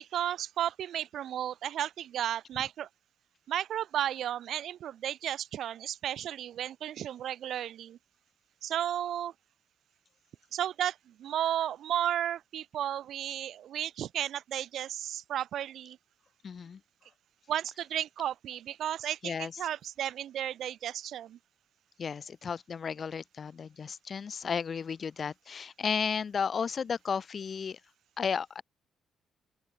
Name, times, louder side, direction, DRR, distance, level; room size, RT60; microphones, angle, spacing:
voice 1, 0.0-2.9 3.5-8.0 8.6-9.3 10.5-16.0 17.5-21.4, right 11 dB, 70° right, 5.4 m, -33 dB
voice 2, 16.4-16.8 19.2-19.5 22.0-27.8 28.2-28.6, left 6 dB, 45° left, 5.5 m, -33 dB
open air
cardioid pair, 90°, 0 cm